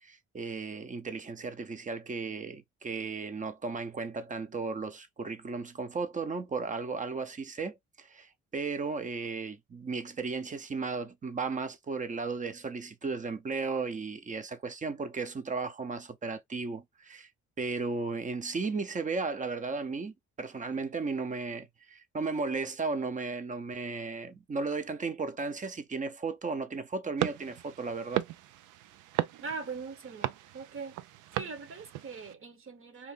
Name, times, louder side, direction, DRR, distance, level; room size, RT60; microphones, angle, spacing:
voice 1, 0.0-17.3 17.6-28.2, right 4 dB, 25° right, 0.6 m, -35 dB
sound 1, 27.2-32.3, right 14 dB, 85° right, 0.5 m, -36 dB
voice 2, 29.4-31.0 31.3-33.1, right 4 dB, 45° right, 1.1 m, -41 dB
2.8 x 2.5 x 3.6 m
cardioid pair, 90°, 30 cm